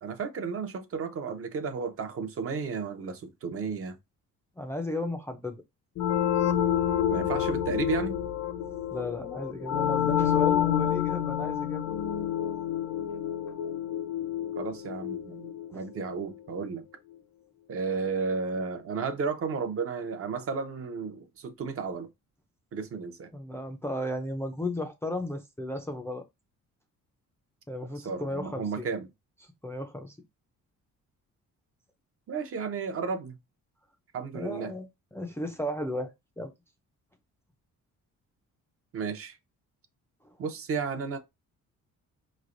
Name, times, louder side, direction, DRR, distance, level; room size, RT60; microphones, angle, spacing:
voice 1, 0.0-4.0 7.1-8.2 14.6-16.8 17.7-22.1 22.7-23.3 28.0-29.1 32.3-33.4 34.1-34.7 38.9-39.4 40.4-41.2, right 5 dB, 45° right, 0.7 m, -33 dB
voice 2, 4.6-5.6 8.9-11.9 15.7-15.8 23.3-26.2 27.7-28.9 29.6-30.2 34.3-36.5, left 1 dB, 10° left, 0.4 m, -34 dB
sound 1, 6.0-16.4, left 10 dB, 55° left, 0.7 m, -28 dB
4.9 x 3.2 x 2.5 m
cardioid pair, 150°, 32 cm